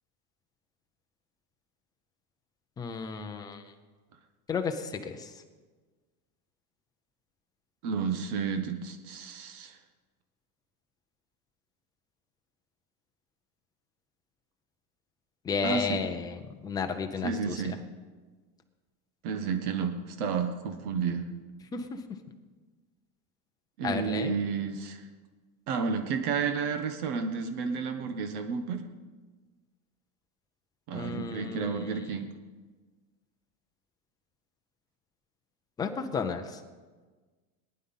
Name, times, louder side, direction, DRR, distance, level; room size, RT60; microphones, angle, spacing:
voice 1, 2.8-3.6 4.5-5.3 15.4-17.5 21.7-21.9 23.8-24.4 30.9-31.8 35.8-36.6, left 5 dB, 10° left, 5 dB, 0.4 m, -33 dB
voice 2, 7.8-9.8 15.6-16.0 17.2-17.8 19.2-21.3 23.8-25.0 25.7-28.8 30.9-32.3, right 5 dB, 70° right, 7 dB, 1.5 m, -31 dB
19.0 x 10.5 x 5.6 m, 1.4 s
cardioid pair, 175°, 45 cm